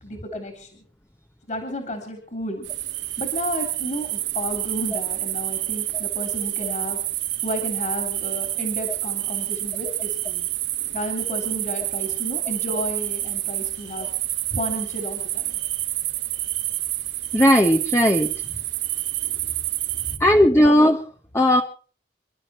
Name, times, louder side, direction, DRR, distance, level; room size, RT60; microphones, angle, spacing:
voice 1, 0.0-0.8 1.5-2.7 3.2-7.0 7.4-10.5 10.9-14.1 14.5-15.5 20.0-20.3, left 1 dB, 40° left, 5 dB, 3.3 m, -32 dB
sound 1, 2.6-20.2, right 15 dB, 85° right, 2.5 m, -28 dB
voice 2, 17.3-18.3 20.2-21.0 21.3-21.6, equal, 15° left, 4 dB, 1.0 m, -16 dB
27.0 x 12.0 x 4.4 m, 0.42 s
head